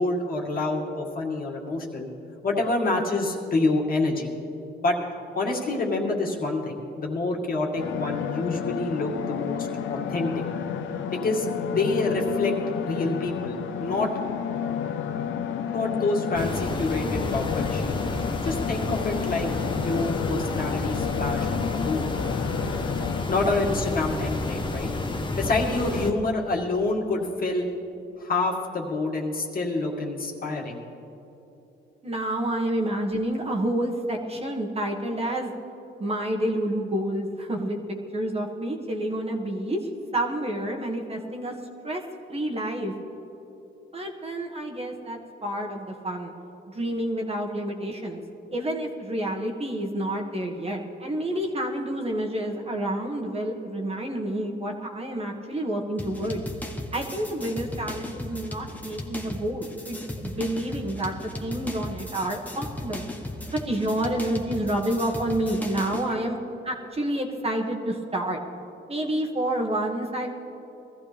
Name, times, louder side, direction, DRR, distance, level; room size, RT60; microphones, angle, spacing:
voice 1, 0.0-2.1 2.4-4.3 4.8-5.0 5.3-10.3 11.1-12.5 12.8-14.1 15.7-18.0 18.4-22.1 23.3-24.9 25.4-27.7 28.2-30.8 66.1-66.2, left 2 dB, 45° left, -1 dB, 2.3 m, -27 dB
sound 1, 7.8-23.2, left 8 dB, 75° left, 0.8 m, -31 dB
sound 2, 16.3-26.1, left 2 dB, 25° left, 1.1 m, -30 dB
voice 2, 32.0-35.5 36.0-41.5 41.8-42.0 42.3-42.9 43.9-46.3 46.7-48.2 48.5-56.4 56.9-63.0 63.5-66.4 66.6-68.4 68.9-70.3, right 1 dB, 30° right, 0 dB, 1.7 m, -29 dB
sound 3, 56.0-66.1, left 1 dB, 10° left, 1.4 m, -36 dB
21.0 x 14.0 x 3.5 m, 3.0 s
cardioid pair, 90°, 20 cm